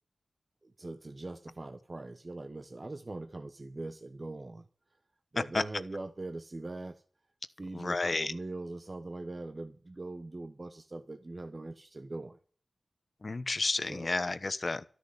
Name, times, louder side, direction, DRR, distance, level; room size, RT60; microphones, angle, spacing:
voice 1, 0.6-4.7 5.3-7.0 7.6-12.4 13.8-14.3, right 2 dB, 40° right, 1.1 m, -42 dB
voice 2, 7.7-8.3 13.2-14.8, left 3 dB, 50° left, 1.0 m, -31 dB
12.5 x 6.8 x 9.6 m
cardioid pair, 50°, 0 cm